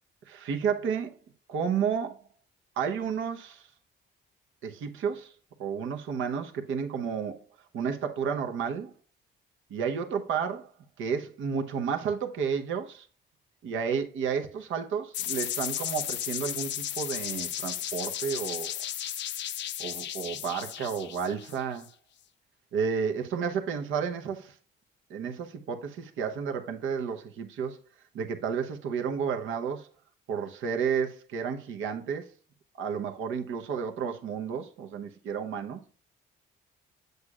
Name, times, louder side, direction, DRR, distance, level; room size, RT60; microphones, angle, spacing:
voice 1, 0.3-1.1 1.5-2.2 2.8-3.7 4.6-5.3 5.6-7.4 7.7-8.9 9.7-10.7 11.0-13.1 13.6-18.7 19.8-21.9 22.7-24.5 25.1-27.8 28.1-29.9 30.3-32.3 32.8-35.8, right 6 dB, 80° right, 0.9 m, -31 dB
sound 1, 15.1-21.9, left 11 dB, 65° left, 0.5 m, -34 dB
8.0 x 6.6 x 2.4 m
cardioid pair, 90°, 20 cm